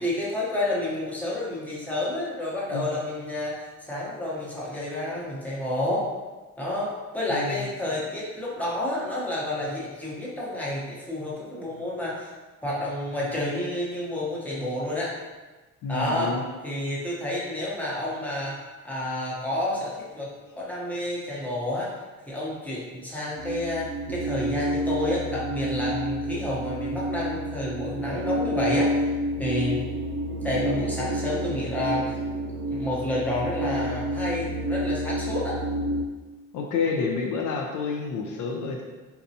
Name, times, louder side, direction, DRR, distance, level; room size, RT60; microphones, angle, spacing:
voice 1, 0.0-3.6 3.9-6.1 6.6-12.3 12.6-15.1 15.9-21.9 22.3-29.1 29.4-29.9 30.3-32.2 32.5-35.6, left 1 dB, 5° left, -6 dB, 0.8 m, -30 dB
voice 2, 7.3-7.6 15.8-16.4 36.5-38.8, left 5 dB, 65° left, 1 dB, 0.5 m, -29 dB
sound 1, 23.4-36.0, right 1 dB, 90° right, 0.5 m, -29 dB
4.0 x 2.2 x 2.7 m, 1.2 s
cardioid pair, 120°, 34 cm